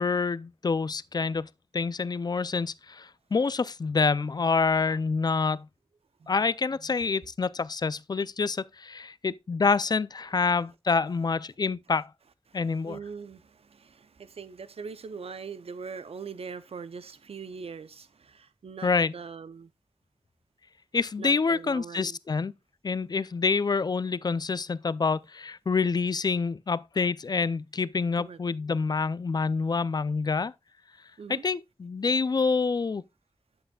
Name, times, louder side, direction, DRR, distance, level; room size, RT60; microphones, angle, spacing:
voice 1, 0.0-5.7 6.3-12.1 12.5-13.0 18.8-19.1 20.9-22.5 22.8-30.5 31.3-33.0, left 4 dB, 45° left, 0.4 m, -27 dB
voice 2, 12.8-19.7 21.2-22.2 28.2-28.4 31.2-31.5, right 5 dB, 90° right, 0.6 m, -41 dB
8.8 x 7.8 x 2.3 m
wide cardioid pair, 85°, 10 cm